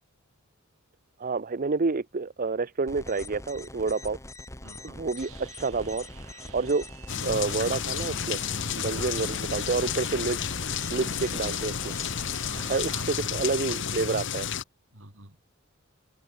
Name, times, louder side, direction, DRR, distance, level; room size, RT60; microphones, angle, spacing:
voice 1, 1.2-4.2 5.0-6.8 7.2-8.4 8.8-10.4 10.9-11.8 12.7-12.9 13.3-14.5, right 4 dB, 40° right, 0.7 m, -28 dB
sound 1, 2.9-12.9, left 2 dB, 15° left, 4.0 m, -43 dB
voice 2, 4.6-5.0 6.6-6.7 8.9-9.3 12.4-13.6 14.9-15.4, right 2 dB, 65° right, 5.0 m, -47 dB
sound 2, 5.2-13.2, right 8 dB, 85° right, 5.1 m, -51 dB
sound 3, 7.1-14.6, left 7 dB, 60° left, 1.2 m, -31 dB
head